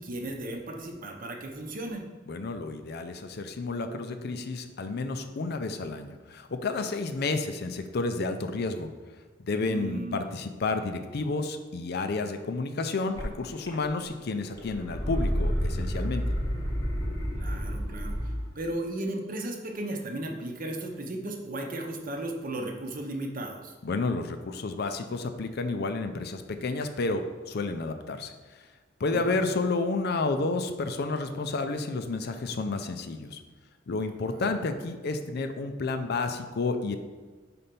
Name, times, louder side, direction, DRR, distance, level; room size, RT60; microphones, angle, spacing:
voice 1, 0.0-2.1 9.6-10.2 17.4-23.7 29.1-29.4, right 1 dB, 45° right, 3 dB, 0.8 m, -35 dB
voice 2, 2.3-8.9 9.4-16.4 23.8-28.7 29.0-33.4 33.9-37.0, left 3 dB, 55° left, 8 dB, 0.5 m, -31 dB
sound 1, 13.2-13.3 13.7-14.2 14.5-18.5, equal, 20° left, 0.8 m, -30 dB
4.4 x 4.2 x 5.2 m, 1.4 s
head